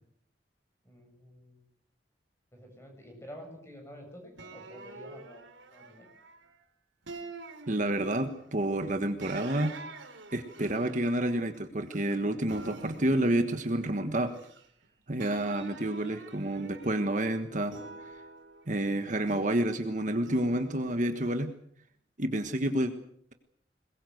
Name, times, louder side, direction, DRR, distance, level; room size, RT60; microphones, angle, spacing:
voice 1, 0.8-1.6 2.5-5.4 5.7-6.1, equal, 15° left, 3 dB, 7.4 m, -49 dB
sound 1, 4.4-6.5 7.1-8.4 9.2-12.2 12.5-14.8 15.2-17.2 17.7-19.6 20.2-21.4, right 3 dB, 80° right, 3.3 m, -47 dB
voice 2, 7.7-9.7 10.3-14.3 15.1-17.7 18.7-21.5 22.2-22.9, right 1 dB, 40° right, 7 dB, 1.5 m, -29 dB
22.0 x 21.0 x 7.9 m, 0.70 s
head